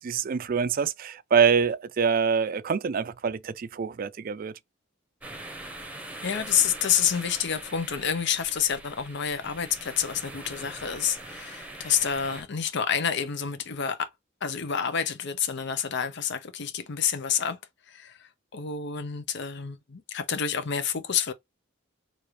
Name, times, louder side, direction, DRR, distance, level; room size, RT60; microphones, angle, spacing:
voice 1, 0.0-4.5, right 6 dB, 45° right, 0.4 m, -25 dB
sound 1, 5.2-12.4, right 2 dB, 10° right, 0.9 m, -42 dB
voice 2, 6.2-14.1 14.4-17.6 17.9-21.3, left 8 dB, 60° left, 0.7 m, -28 dB
3.2 x 2.4 x 4.3 m
head